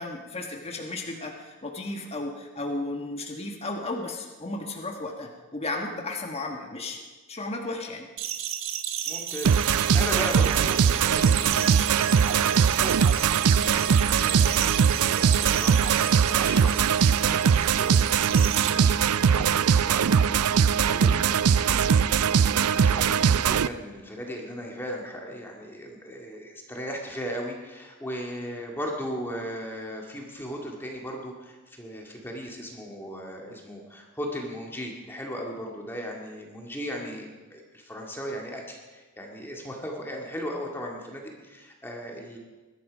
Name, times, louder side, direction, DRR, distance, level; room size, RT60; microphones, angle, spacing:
voice 1, 0.0-7.0 7.3-8.1 40.8-40.9, left 2 dB, 30° left, 2 dB, 1.4 m, -34 dB
sound 1, 8.2-18.7, right 10 dB, 65° right, 1.3 m, -33 dB
voice 2, 9.1-42.4, equal, 10° left, 0 dB, 2.0 m, -37 dB
sound 2, 9.4-23.7, right 7 dB, 90° right, 0.5 m, -21 dB
sound 3, 19.0-23.9, right 1 dB, 45° right, 6.0 m, -46 dB
22.0 x 12.0 x 5.2 m, 1.3 s
head